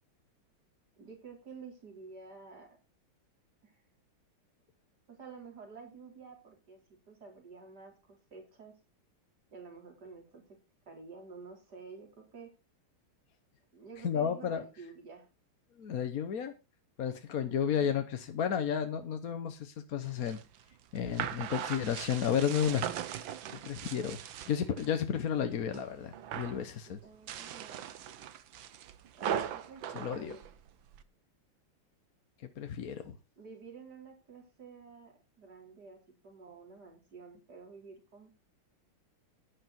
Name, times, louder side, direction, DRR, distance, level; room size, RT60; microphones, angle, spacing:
voice 1, 1.0-2.7 3.6-3.7 5.1-8.7 9.5-10.6 10.9-12.5 13.7-15.3 17.7-18.1 24.0-24.3 26.9-28.3 29.1-30.4 33.4-36.0 36.2-38.3, right 5 dB, 50° right, 1 dB, 4.7 m, -51 dB
voice 2, 14.0-14.6 15.8-16.5 17.0-20.4 20.9-22.9 23.6-24.2 24.5-27.0 29.9-30.3 32.6-33.1, left 8 dB, 50° left, 8 dB, 1.2 m, -32 dB
sound 1, 20.0-24.9 25.3-25.9 26.1-26.6 27.1-31.0, right 9 dB, 70° right, 1.6 m, -39 dB
11.5 x 10.0 x 4.3 m, 0.28 s
omnidirectional pair, 2.3 m